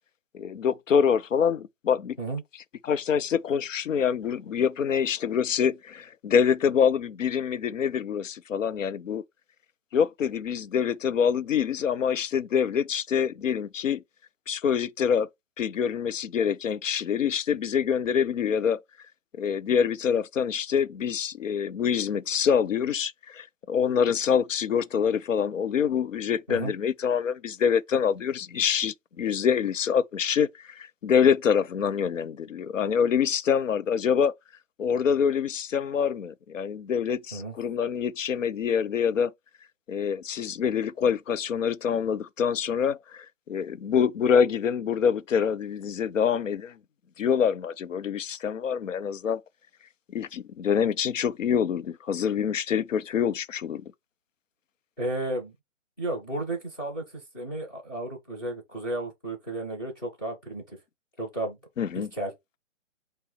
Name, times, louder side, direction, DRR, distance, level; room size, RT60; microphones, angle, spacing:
voice 1, 0.3-2.2 2.8-9.2 9.9-14.0 14.5-15.3 15.6-18.8 19.4-34.3 34.8-39.3 39.9-46.7 47.2-49.4 50.1-53.8 61.8-62.1, left 7 dB, 80° left, 0.6 m, -25 dB
voice 2, 55.0-55.5 56.0-60.8 61.2-61.6 61.9-62.3, right 2 dB, 15° left, 1.0 m, -33 dB
5.6 x 2.1 x 4.0 m
hypercardioid pair, 175°, 38 cm